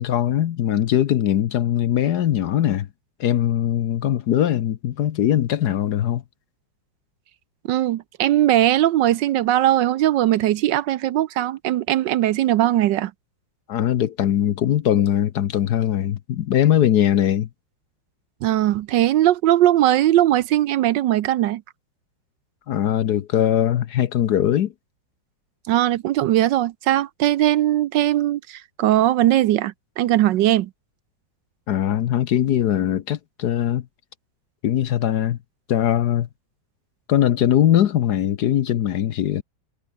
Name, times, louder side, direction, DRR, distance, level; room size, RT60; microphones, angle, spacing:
voice 1, 0.0-2.9 3.2-6.2 13.7-17.5 22.7-24.7 31.7-33.8 34.6-35.4 35.7-36.3 37.1-39.4, left 11 dB, 60° left, 1.3 m, -21 dB
voice 2, 7.7-13.1 18.4-21.6 25.7-30.7, right 13 dB, 75° right, 1.3 m, -19 dB
omnidirectional pair, 2.1 m